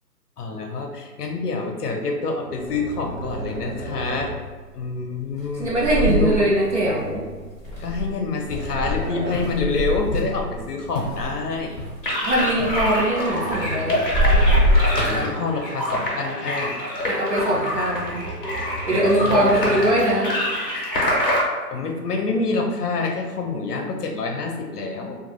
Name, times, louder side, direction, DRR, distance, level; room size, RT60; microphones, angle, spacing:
voice 1, 0.4-4.3 4.7-6.5 7.8-11.8 15.1-16.8 18.9-19.8 21.7-25.2, left 3 dB, 70° left, 2 dB, 0.6 m, -27 dB
sound 1, 2.4-4.5 5.5-7.7 8.2-9.6 10.3-11.8 13.1-15.6 15.9-16.0 17.4-20.2, right 2 dB, 85° right, 0.8 m, -35 dB
sound 2, 2.7-2.8 3.2-3.7 4.2-4.5 5.4-10.6 10.9-13.8 14.0-15.2, equal, 10° right, 0.7 m, -23 dB
voice 2, 5.6-7.2 12.2-14.0 17.1-18.2 18.9-20.4, right 1 dB, 45° right, -5 dB, 0.8 m, -21 dB
sound 3, 12.0-21.4, left 1 dB, 35° left, 0.7 m, -25 dB
2.6 x 2.4 x 3.0 m, 1.3 s
hypercardioid pair, 160°, 49 cm